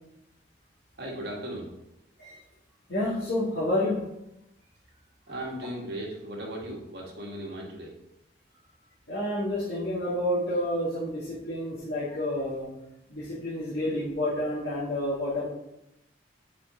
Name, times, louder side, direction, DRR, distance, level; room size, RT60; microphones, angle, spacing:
voice 1, 1.0-1.7 5.3-7.9, right 1 dB, 60° right, -3 dB, 1.8 m, -37 dB
voice 2, 2.9-4.0 9.1-12.7 13.1-15.5, left 1 dB, 75° left, -10 dB, 2.0 m, -29 dB
6.7 x 4.5 x 3.7 m, 0.83 s
head